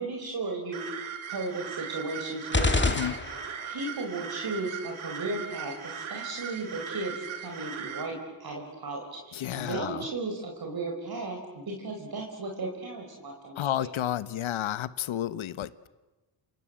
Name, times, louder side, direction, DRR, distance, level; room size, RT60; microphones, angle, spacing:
voice 1, 0.0-2.8 3.6-13.9, right 2 dB, 50° right, 0 dB, 5.3 m, -35 dB
sound 1, 0.7-8.1, right 8 dB, 90° right, 2.8 m, -39 dB
sound 2, 2.5-3.8, left 3 dB, 25° left, 1.9 m, -27 dB
voice 2, 2.9-3.2 9.3-10.1 13.6-15.9, left 11 dB, 85° left, 16 dB, 1.1 m, -31 dB
27.5 x 27.5 x 7.8 m, 1.1 s
cardioid pair, 80°, 47 cm